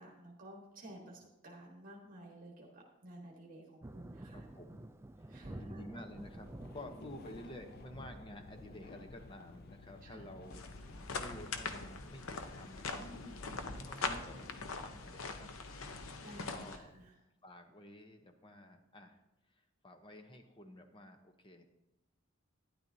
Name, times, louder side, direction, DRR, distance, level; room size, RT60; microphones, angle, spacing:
voice 1, 0.0-4.4 5.3-5.9 10.0-10.2 13.0-13.4 13.9-14.2 16.2-17.1, right 1 dB, 45° right, -1 dB, 1.5 m, -53 dB
Thunder, 3.8-17.1, right 1 dB, 15° right, 0.4 m, -54 dB
voice 2, 4.3-4.9 5.3-13.1 13.8-14.4 14.6-15.5 16.5-16.9 17.4-19.2 19.8-21.6, left 1 dB, 25° left, 6 dB, 0.9 m, -51 dB
sound 1, 6.2-14.7, left 3 dB, 50° left, 0.5 m, -55 dB
sound 2, 10.5-16.8, left 4 dB, 80° left, 0.7 m, -42 dB
12.0 x 10.5 x 2.7 m, 0.91 s
head